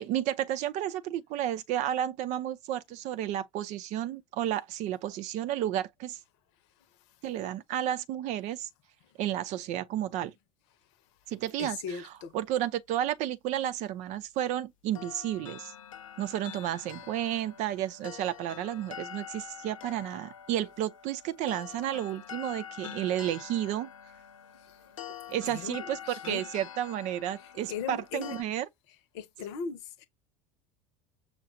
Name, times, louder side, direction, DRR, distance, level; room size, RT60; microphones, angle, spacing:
voice 1, 0.0-6.2 7.2-8.7 9.2-10.3 11.3-11.8 12.3-15.7 16.2-23.9 25.3-28.6, right 12 dB, 45° right, 0.6 m, -32 dB
voice 2, 11.6-12.3 24.5-24.9 25.5-26.5 27.4-28.4 29.1-30.1, left 7 dB, 60° left, 0.9 m, -39 dB
sound 1, 15.0-28.4, left 9 dB, 75° left, 0.6 m, -46 dB
6.5 x 2.4 x 2.5 m
figure-of-eight pair, 75°, 17 cm